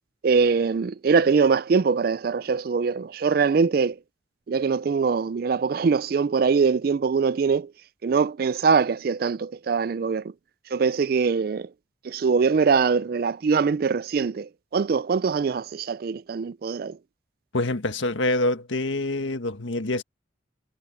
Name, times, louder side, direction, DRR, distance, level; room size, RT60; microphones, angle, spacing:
voice 1, 0.2-4.0 4.5-7.7 8.0-10.3 10.7-11.7 12.0-17.0, right 5 dB, 50° right, 0.3 m, -23 dB
voice 2, 17.5-20.0, left 2 dB, 85° left, 1.7 m, -26 dB
head